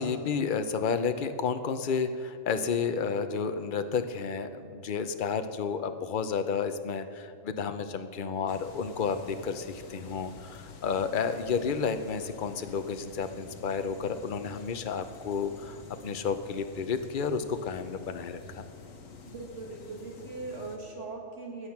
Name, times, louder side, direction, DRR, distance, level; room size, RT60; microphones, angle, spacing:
voice 1, 0.0-15.8 16.0-18.6, left 5 dB, 45° left, 9 dB, 0.8 m, -31 dB
sound 1, 8.5-20.8, left 5 dB, 85° left, 1.5 m, -48 dB
voice 2, 19.3-21.7, right 3 dB, 65° right, -1 dB, 2.2 m, -40 dB
16.5 x 9.7 x 5.9 m, 2.4 s
omnidirectional pair, 1.3 m